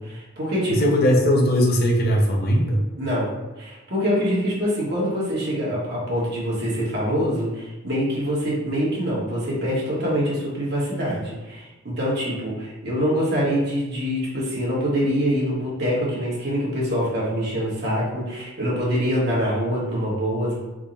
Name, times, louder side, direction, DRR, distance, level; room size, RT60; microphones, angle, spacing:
voice 1, 0.0-1.0 3.0-20.5, equal, 50° right, -6 dB, 1.2 m, -25 dB
voice 2, 0.7-2.9, equal, 45° left, 0 dB, 0.5 m, -19 dB
3.6 x 2.1 x 4.0 m, 1.1 s
head